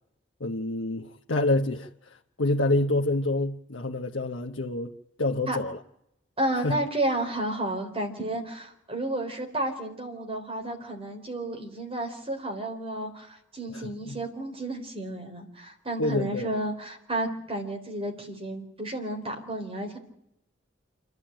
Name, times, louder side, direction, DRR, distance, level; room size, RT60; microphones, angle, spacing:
voice 1, 0.4-4.9 5.2-5.8 6.6-6.7 13.7-14.2 16.0-16.5, left 2 dB, 70° left, 1.0 m, -27 dB
voice 2, 6.4-20.0, right 1 dB, 30° right, 4.0 m, -32 dB
28.0 x 12.5 x 8.9 m
head